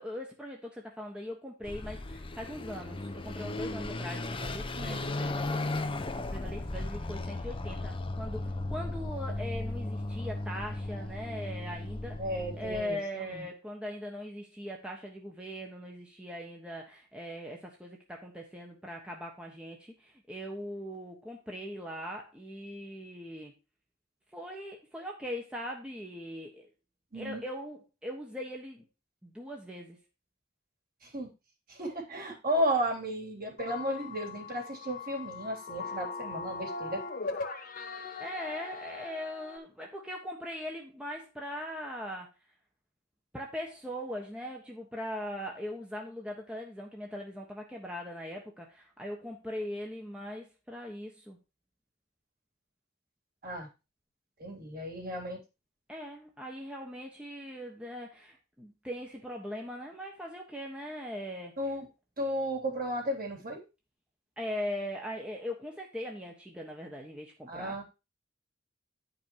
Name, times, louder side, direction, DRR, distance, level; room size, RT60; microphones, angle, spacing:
voice 1, 0.0-12.2 12.6-23.5 24.3-26.7 27.1-28.9 29.2-30.0 38.2-42.3 43.3-51.4 55.9-61.6 64.4-67.8, equal, 5° right, -1 dB, 1.3 m, -40 dB
Car passing by / Accelerating revving vroom, 1.6-12.9, left 2 dB, 30° left, 0.8 m, -36 dB
voice 2, 12.2-13.0 13.2-13.5 27.1-27.4 31.0-31.3 31.7-37.0 53.4-53.7 54.4-55.4 61.6-61.9 62.2-63.6 67.5-67.8, equal, 50° right, 0 dB, 3.2 m, -34 dB
sound 1, 33.6-39.6, left 4 dB, 45° left, 1.2 m, -40 dB
10.5 x 5.4 x 4.6 m, 0.28 s
head